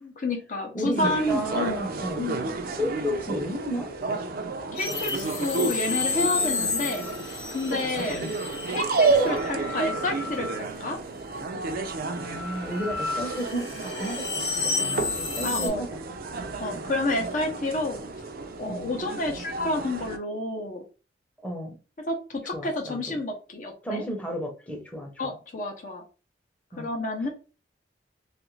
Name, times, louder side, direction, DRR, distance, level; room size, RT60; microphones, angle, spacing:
voice 1, 0.0-1.9 2.2-2.5 4.7-8.2 8.7-11.0 15.4-15.9 16.6-18.1 18.6-20.8 22.1-24.0 25.2-26.0 26.8-27.3, left 2 dB, 45° left, 3 dB, 0.6 m, -30 dB
voice 2, 0.7-2.2 2.7-3.9 8.0-8.3 12.2-15.9 16.7-16.9 18.7-18.9 21.4-21.7 22.5-23.2 23.8-25.3 26.7-26.9 27.2-27.3, equal, 10° left, 0 dB, 0.7 m, -33 dB
sound 1, 0.9-20.2, right 3 dB, 55° right, 0.4 m, -31 dB
sound 2, 4.8-11.1 11.4-15.7, left 4 dB, 75° left, 0.9 m, -32 dB
3.1 x 2.4 x 3.1 m, 0.34 s
head